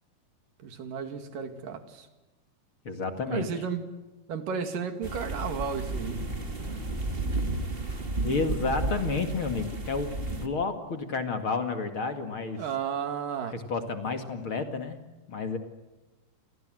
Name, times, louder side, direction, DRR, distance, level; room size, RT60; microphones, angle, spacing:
voice 1, 0.6-2.1 3.3-3.9 4.3-6.3 6.7-6.8 12.6-13.6, right 6 dB, 75° right, 8 dB, 3.8 m, -33 dB
voice 2, 2.8-3.5 8.2-12.6 13.5-15.0 15.3-15.6, left 4 dB, 40° left, 7 dB, 2.6 m, -31 dB
sound 1, 5.0-10.5, right 2 dB, 20° right, 2.0 m, -32 dB
30.0 x 24.5 x 7.8 m, 1.1 s
omnidirectional pair, 3.9 m